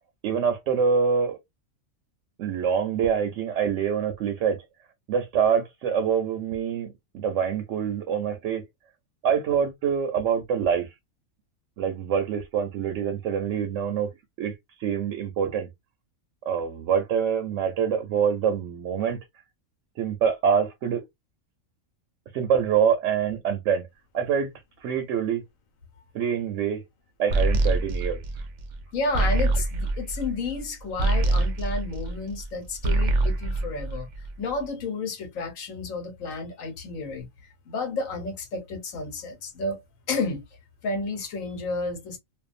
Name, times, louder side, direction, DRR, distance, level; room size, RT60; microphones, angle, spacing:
voice 1, 0.2-1.4 2.4-4.6 5.1-8.6 9.2-10.9 11.8-14.1 14.4-14.5 14.8-15.7 16.5-19.2 20.0-21.0 22.3-23.9 24.1-24.5 24.8-25.4 26.1-26.8 27.2-28.2, right 7 dB, 70° right, 0.9 m, -25 dB
sound 1, 27.3-32.5 32.8-34.5, right 2 dB, 90° right, 0.4 m, -25 dB
voice 2, 28.9-34.1 34.4-37.3 37.6-39.8 40.1-40.4 40.8-42.2, left 3 dB, 80° left, 1.3 m, -31 dB
2.6 x 2.3 x 2.4 m
omnidirectional pair, 1.4 m